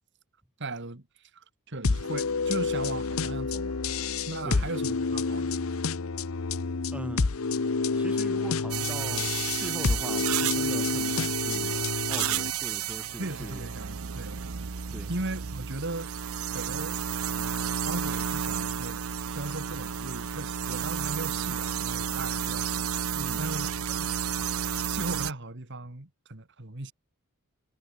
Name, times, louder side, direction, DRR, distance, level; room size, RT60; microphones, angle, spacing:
voice 1, 0.6-3.8 4.3-5.5 13.2-14.4 15.1-16.1 16.5-19.0 19.3-22.8 23.4-24.1 24.9-26.9, right 2 dB, 55° right, 2.2 m, -38 dB
sound 1, 1.8-12.5, left 4 dB, 65° left, 0.8 m, -29 dB
voice 2, 6.9-7.4 7.9-13.6 14.9-15.1 23.1-23.4, equal, 5° right, 1.2 m, -40 dB
sound 2, 8.7-25.3, right 8 dB, 75° right, 0.8 m, -32 dB
head